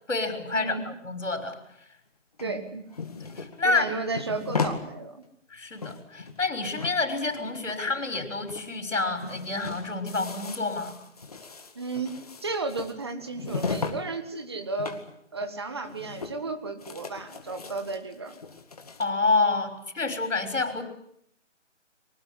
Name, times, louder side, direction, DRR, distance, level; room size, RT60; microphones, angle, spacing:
voice 1, 0.1-1.6 2.4-2.6 3.2-3.9 5.5-11.0 19.0-20.8, left 3 dB, 70° left, 8 dB, 6.3 m, -28 dB
sound 1, 2.4-4.8 5.2-5.3 5.6-6.5 6.8-8.2 8.5-8.7 9.0-14.0 14.3-15.1 15.4-15.5 15.8-16.5 16.8-19.1, left 4 dB, 30° left, 2.0 m, -36 dB
voice 2, 2.4-2.8 3.6-5.2 11.7-12.2 12.4-15.0 15.3-18.4, right 3 dB, 20° right, 7 dB, 1.6 m, -33 dB
24.0 x 19.0 x 9.9 m, 0.71 s
figure-of-eight pair, 175°, 38 cm